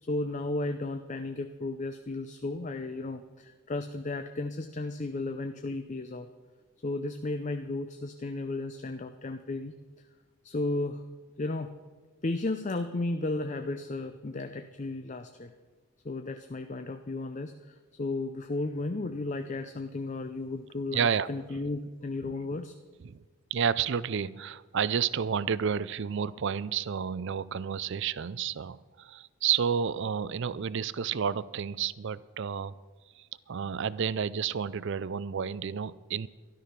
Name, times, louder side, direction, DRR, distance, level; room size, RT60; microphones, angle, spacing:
voice 1, 0.0-6.3 6.8-9.7 10.4-11.0 11.4-11.7 12.2-15.5 16.0-22.7, left 2 dB, 35° left, 8 dB, 0.5 m, -34 dB
voice 2, 20.9-21.3 23.0-23.2 23.5-32.7 33.2-36.3, right 7 dB, 55° right, 19 dB, 0.4 m, -30 dB
13.0 x 12.0 x 5.8 m, 1.4 s
head